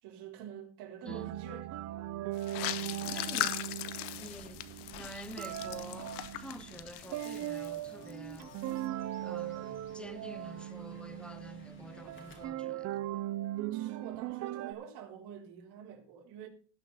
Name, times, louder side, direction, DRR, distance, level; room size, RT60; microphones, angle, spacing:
voice 1, 0.0-1.7 2.0-2.1 13.7-16.5, right 8 dB, 80° right, 4.0 m, -47 dB
sound 1, 1.1-14.7, right 13 dB, 45° right, 0.4 m, -39 dB
sound 2, 2.4-8.1 8.4-8.8, left 14 dB, 75° left, 1.1 m, -39 dB
voice 2, 3.1-3.6 4.2-4.7 4.9-8.6 9.2-13.1, equal, 5° left, 0.6 m, -48 dB
Fowl / Bird, 4.1-12.4, left 3 dB, 30° left, 2.8 m, -56 dB
18.0 x 6.1 x 4.1 m
cardioid pair, 165°, 40 cm